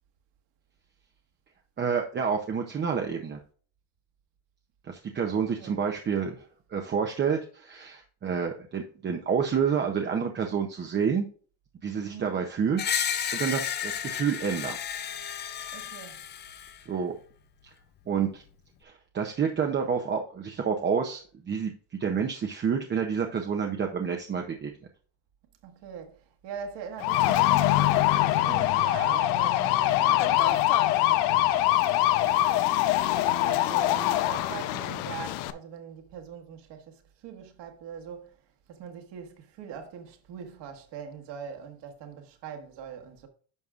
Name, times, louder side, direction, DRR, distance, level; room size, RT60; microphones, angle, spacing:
voice 1, 1.8-3.4 4.8-11.3 11.8-12.8 13.3-14.8 16.9-17.2 18.1-18.4 18.8-21.7 22.0-24.7, right 6 dB, 25° right, 0.6 m, -29 dB
voice 2, 5.4-5.9 11.9-12.4 15.7-16.2 25.6-31.7 32.3-32.7 33.2-38.4 38.7-43.3, right 7 dB, 55° right, 1.6 m, -42 dB
Screech, 12.8-16.8, left 8 dB, 25° left, 0.3 m, -32 dB
sound 1, 27.0-35.5, left 14 dB, 85° left, 0.7 m, -23 dB
10.5 x 6.3 x 2.4 m
cardioid pair, 140°, 49 cm